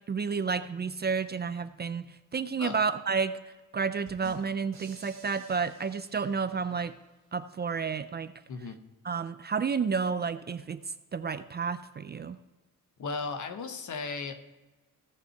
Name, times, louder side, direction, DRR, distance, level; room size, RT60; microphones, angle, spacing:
voice 1, 0.1-3.4 3.7-6.9 7.3-8.3 9.0-10.8 11.1-12.4, right 5 dB, 30° right, 12 dB, 0.4 m, -31 dB
sound 1, 4.1-6.9, right 3 dB, 55° right, 2.3 m, -52 dB
voice 2, 13.0-14.4, left 4 dB, 65° left, 7 dB, 1.1 m, -35 dB
16.5 x 5.6 x 4.5 m, 1.2 s
wide cardioid pair, 150°, 33 cm